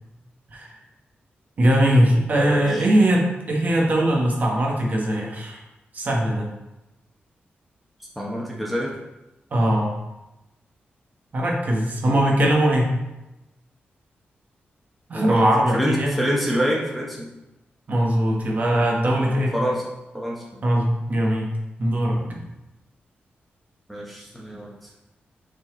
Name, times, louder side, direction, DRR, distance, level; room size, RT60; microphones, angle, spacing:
voice 1, 1.6-5.6 5.9-6.5 9.5-9.9 11.3-12.9 15.1-16.2 17.9-19.5 20.6-21.5 21.8-22.5, right 1 dB, 45° right, -2 dB, 1.2 m, -20 dB
voice 2, 2.3-2.8 8.2-8.9 15.1-15.5 15.7-17.3 19.2-19.8 20.1-20.6 23.9-24.7, equal, ahead, -4 dB, 1.0 m, -26 dB
6.0 x 4.1 x 3.8 m, 0.98 s
wide cardioid pair, 140°, 4 cm